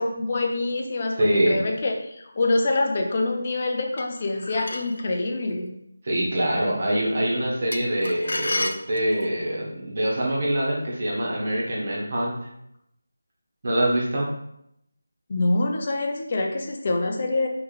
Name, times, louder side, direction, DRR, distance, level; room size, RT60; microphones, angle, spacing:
voice 1, 0.0-5.7 15.3-17.5, left 2 dB, 30° left, 2 dB, 0.5 m, -25 dB
voice 2, 1.2-1.6 6.0-12.3 13.6-14.3, right 1 dB, 35° right, -4 dB, 1.3 m, -24 dB
sound 1, 4.0-5.0 7.7-9.4, left 2 dB, 75° left, 0.5 m, -31 dB
4.0 x 3.2 x 4.1 m, 0.77 s
figure-of-eight pair, 175°, 0 cm